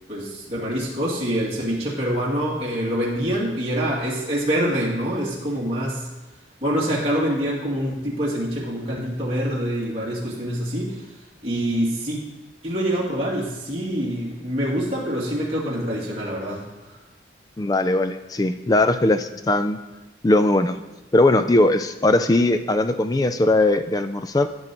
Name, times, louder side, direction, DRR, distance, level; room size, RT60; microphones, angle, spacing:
voice 1, 0.1-6.1 6.6-12.2 12.6-17.0, equal, 35° right, -6 dB, 2.6 m, -25 dB
voice 2, 17.6-19.8 20.2-20.8 21.1-24.5, left 2 dB, 20° left, 10 dB, 0.4 m, -19 dB
15.0 x 5.6 x 3.1 m, 1.1 s
head